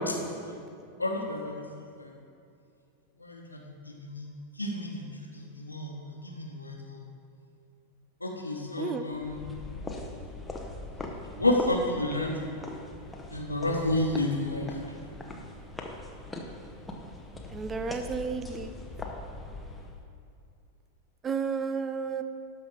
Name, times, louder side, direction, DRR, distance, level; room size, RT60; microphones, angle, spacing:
voice 1, 1.0-1.6 2.0-2.1 3.2-3.6 3.9-4.2 4.6-5.0 5.3-7.0 8.2-9.4 11.4-12.5 13.3-14.8, left 1 dB, 85° left, 1 dB, 1.2 m, -30 dB
sound 1, 9.1-20.0, left 2 dB, 10° left, 1.0 m, -41 dB
voice 2, 17.5-18.7 21.2-22.2, right 5 dB, 20° right, 9 dB, 0.5 m, -32 dB
12.0 x 5.7 x 4.7 m, 2.5 s
figure-of-eight pair, 90°, 0 cm